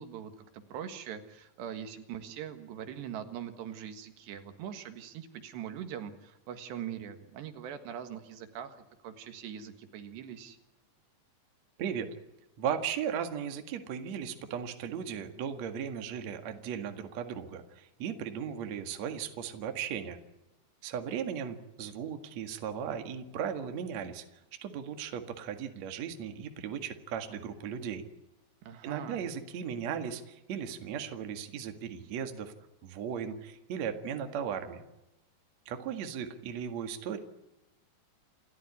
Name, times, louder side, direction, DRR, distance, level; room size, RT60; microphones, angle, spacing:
voice 1, 0.0-8.8 9.0-10.6 28.6-29.2, right 9 dB, 80° right, 8 dB, 3.7 m, -42 dB
voice 2, 12.6-20.2 20.8-24.2 24.6-28.1 28.8-32.5 32.8-34.8 35.7-37.2, right 8 dB, 50° right, 6 dB, 2.5 m, -36 dB
28.5 x 14.0 x 9.8 m, 0.95 s
omnidirectional pair, 5.0 m